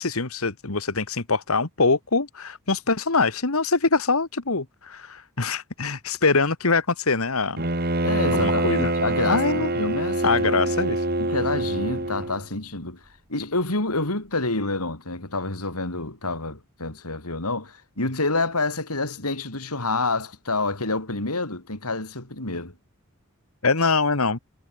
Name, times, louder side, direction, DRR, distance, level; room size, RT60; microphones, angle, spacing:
voice 1, 0.0-7.6 8.3-8.9 9.3-9.7 10.2-11.1 23.6-24.4, left 4 dB, 70° left, 1.7 m, -23 dB
Bowed string instrument, 7.6-12.4, right 2 dB, 45° right, 4.5 m, -25 dB
voice 2, 8.0-10.7 11.2-13.0 13.3-22.7, left 2 dB, 85° left, 5.2 m, -28 dB
head